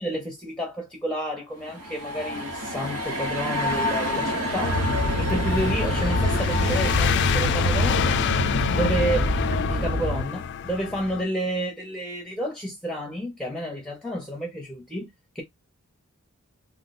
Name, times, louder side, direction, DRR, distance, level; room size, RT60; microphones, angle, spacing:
voice 1, 0.0-4.9 5.2-8.3 8.7-9.3 9.6-15.4, equal, 5° left, 0.6 m, -30 dB
sound 1, 1.6-10.3, left 1 dB, 90° right, 1.1 m, -31 dB
sound 2, 4.6-11.2, left 8 dB, 55° left, 0.3 m, -27 dB
sound 3, 4.6-10.2, equal, 60° right, 1.0 m, -26 dB
3.0 x 2.1 x 4.0 m
head